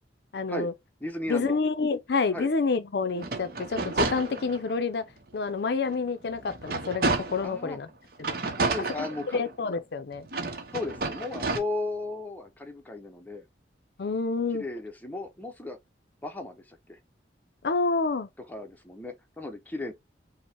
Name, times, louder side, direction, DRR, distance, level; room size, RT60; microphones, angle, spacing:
voice 1, 0.3-0.7 1.3-5.1 5.3-7.9 8.2-8.4 9.0-9.1 9.3-10.3 14.0-14.6 17.6-18.3, left 4 dB, 65° left, 0.5 m, -28 dB
voice 2, 1.0-1.6 2.3-2.5 7.4-7.8 8.6-9.4 10.7-13.4 14.5-15.8 16.2-17.0 18.5-19.9, left 2 dB, 10° left, 0.6 m, -35 dB
sound 1, 3.1-4.8 5.3-5.4 5.8-7.6 8.2-9.7 10.2-11.6, right 3 dB, 55° right, 0.8 m, -31 dB
5.2 x 2.1 x 3.3 m
head